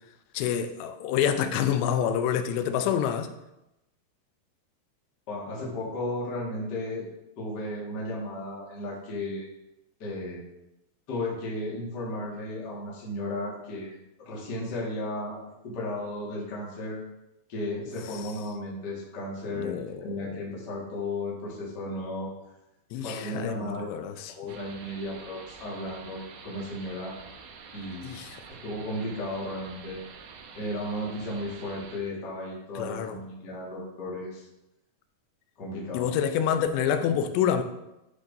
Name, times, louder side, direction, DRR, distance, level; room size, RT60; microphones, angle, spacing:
voice 1, 0.3-3.3 19.5-20.3 22.9-24.6 28.0-28.4 32.8-33.2 35.9-37.6, left 8 dB, 85° left, 2.7 m, -27 dB
voice 2, 5.3-7.1 7.4-9.5 10.0-10.4 11.1-15.4 15.6-17.0 17.5-22.3 22.9-23.9 24.3-27.1 27.7-28.2 28.6-30.0 30.5-34.5 35.6-36.1, left 1 dB, 60° left, 1.0 m, -34 dB
sound 1, 24.5-32.0, right 5 dB, 80° right, 2.0 m, -47 dB
11.5 x 4.7 x 2.6 m
omnidirectional pair, 4.8 m